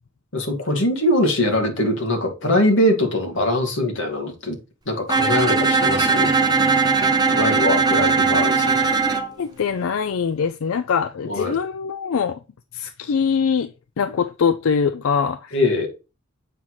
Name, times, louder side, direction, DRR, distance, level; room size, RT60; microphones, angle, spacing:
voice 1, 0.3-4.6 4.9-6.3 7.3-8.9 11.2-11.6 15.5-15.9, left 1 dB, 65° left, 2.0 m, -22 dB
Bowed string instrument, 5.1-9.3, right 4 dB, 20° right, 0.8 m, -19 dB
voice 2, 9.4-12.4 12.7-13.7 14.0-15.6, left 6 dB, 90° left, 0.4 m, -23 dB
7.4 x 5.7 x 3.1 m
head